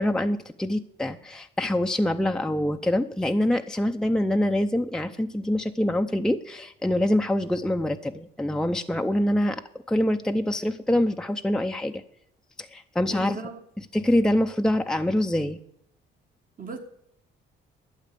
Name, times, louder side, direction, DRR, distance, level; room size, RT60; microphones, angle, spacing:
voice 1, 0.0-9.6 9.9-12.0 12.6-13.4 13.9-15.6, left 1 dB, 5° left, 0.6 m, -25 dB
voice 2, 13.1-13.6 16.6-16.8, right 4 dB, 45° right, 1.6 m, -37 dB
12.0 x 8.1 x 6.8 m
cardioid pair, 90°, 20 cm